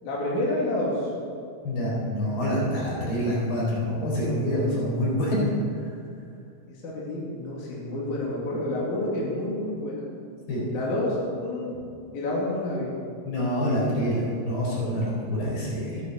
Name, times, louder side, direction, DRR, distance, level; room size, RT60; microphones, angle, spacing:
voice 1, 0.0-1.1 6.7-10.1 10.7-11.7 12.1-12.9, left 1 dB, 55° left, -5 dB, 3.7 m, -29 dB
voice 2, 1.6-5.5 10.5-10.6 13.2-16.0, equal, 80° left, -5 dB, 6.5 m, -26 dB
14.0 x 11.0 x 6.9 m, 2.4 s
omnidirectional pair, 4.5 m